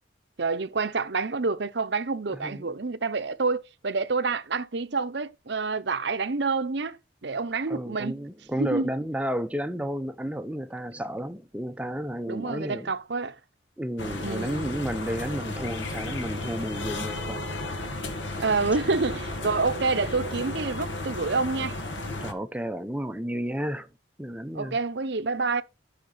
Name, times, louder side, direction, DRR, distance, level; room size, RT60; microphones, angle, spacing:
voice 1, 0.4-8.2 8.6-8.9 12.3-13.4 14.2-14.8 18.4-21.8 24.5-25.6, right 4 dB, 60° right, 0.8 m, -28 dB
voice 2, 2.3-2.7 7.7-12.9 13.8-17.4 22.2-23.9 24.2-24.8, equal, 5° right, 0.6 m, -32 dB
sound 1, 14.0-22.3, left 2 dB, 70° left, 1.8 m, -34 dB
12.0 x 5.9 x 4.0 m
head